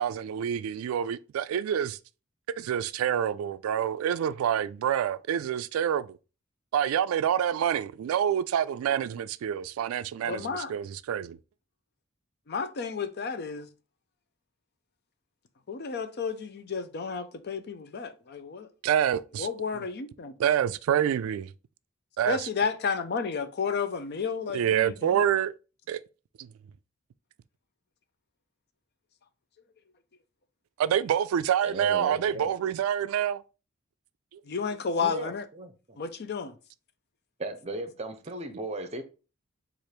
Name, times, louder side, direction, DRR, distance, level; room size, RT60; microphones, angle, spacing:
voice 1, 0.0-2.0 2.6-6.2 6.7-11.4 18.8-19.5 20.4-21.5 22.2-22.5 24.5-25.5 25.9-26.0 26.4-26.5 30.8-33.4 34.3-34.4, right 9 dB, 85° right, 0.3 m, -27 dB
voice 2, 10.2-10.7 12.5-13.7 15.7-18.7 19.4-20.4 22.3-25.2 34.5-35.4 36.0-36.5, left 5 dB, 50° left, 0.5 m, -32 dB
voice 3, 31.6-32.5 35.0-36.0 37.4-39.0, right 2 dB, 30° right, 0.6 m, -36 dB
4.3 x 2.5 x 4.9 m
head